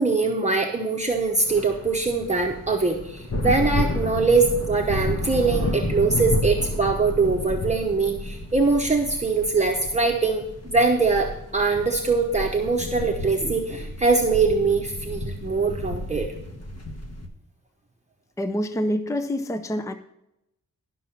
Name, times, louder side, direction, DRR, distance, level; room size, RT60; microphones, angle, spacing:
voice 1, 0.0-16.3, right 4 dB, 20° right, 1 dB, 0.9 m, -22 dB
sound 1, 1.3-17.3, left 1 dB, 45° left, 1.3 m, -31 dB
voice 2, 18.4-19.9, equal, 10° left, 10 dB, 0.5 m, -26 dB
11.5 x 6.1 x 5.6 m, 0.84 s
wide cardioid pair, 160°, 34 cm